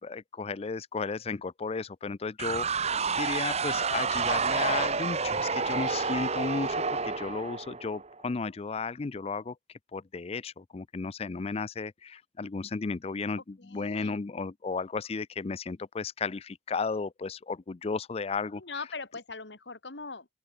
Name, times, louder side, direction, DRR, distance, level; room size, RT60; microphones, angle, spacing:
voice 1, 0.0-2.7 3.2-9.5 9.9-18.6, left 4 dB, 35° left, 0.4 m, -34 dB
sound 1, 2.4-8.1, right 5 dB, 40° right, 1.8 m, -29 dB
voice 2, 13.6-14.2 18.5-20.3, left 4 dB, 80° left, 2.7 m, -41 dB
open air
head